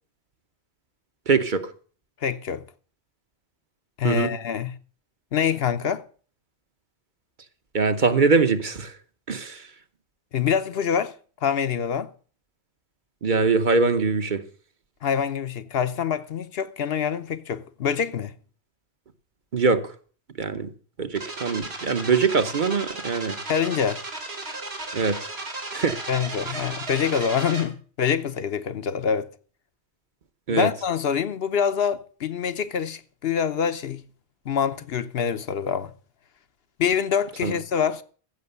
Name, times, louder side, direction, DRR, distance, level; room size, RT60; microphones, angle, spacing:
voice 1, 1.3-1.7 4.0-4.3 7.7-9.0 9.3-9.7 13.2-14.4 19.5-19.9 20.4-20.7 21.0-23.4 24.9-25.2 25.7-26.0 26.5-26.6 30.5-30.7 37.4-37.6, right 4 dB, 50° right, 1.0 m, -22 dB
voice 2, 2.2-2.6 4.0-4.7 5.3-6.0 10.3-11.1 11.4-12.1 15.0-18.3 23.5-24.0 26.1-29.3 30.5-34.0 34.5-35.9 36.8-38.0, left 7 dB, 70° left, 1.0 m, -25 dB
sound 1, 21.1-27.6, right 2 dB, 75° right, 2.7 m, -35 dB
15.0 x 6.3 x 6.8 m
omnidirectional pair, 1.1 m